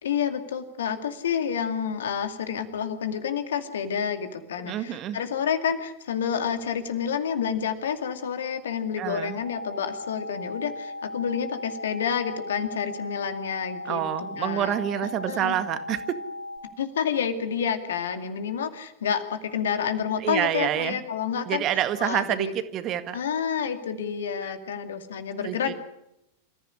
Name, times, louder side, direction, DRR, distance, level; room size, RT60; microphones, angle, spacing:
voice 1, 0.0-14.0 14.4-14.7 15.3-15.6 16.8-21.6 22.0-22.5 23.1-25.7, left 7 dB, 65° left, 8 dB, 2.3 m, -29 dB
voice 2, 4.6-5.2 9.0-9.4 13.9-16.2 20.2-21.0 21.5-23.2 25.4-25.7, right 11 dB, 35° right, 11 dB, 1.8 m, -28 dB
sound 1, 9.4-16.6, left 2 dB, 70° right, 4.9 m, -37 dB
27.5 x 15.0 x 9.9 m, 0.86 s
figure-of-eight pair, 90°, 0 cm